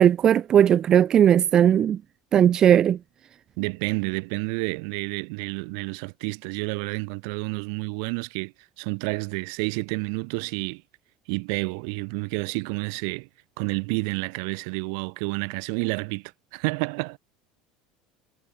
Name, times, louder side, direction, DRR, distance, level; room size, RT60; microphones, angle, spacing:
voice 1, 0.0-2.0 2.3-3.0, right 9 dB, 30° right, 1.1 m, -17 dB
voice 2, 3.6-8.5 8.8-10.8 11.3-13.3 13.6-17.2, right 38 dB, 75° right, 4.0 m, -29 dB
cardioid pair, 150°, 2 cm